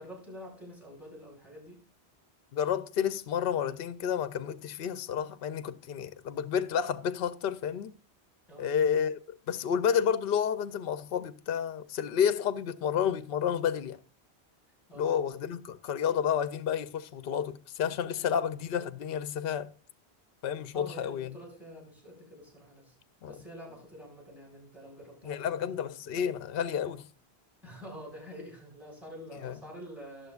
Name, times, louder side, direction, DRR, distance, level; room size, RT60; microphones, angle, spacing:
voice 1, 0.0-1.8 8.5-8.8 14.9-15.2 18.2-18.4 20.7-23.0 23.3-25.7 27.6-30.3, equal, ahead, 5.4 m, -47 dB
voice 2, 2.5-7.9 8.6-14.0 15.0-19.7 20.4-21.4 23.2-23.3 25.2-27.1 29.4-29.6, left 8 dB, 65° left, 0.8 m, -30 dB
18.5 x 7.2 x 2.4 m
omnidirectional pair, 1.1 m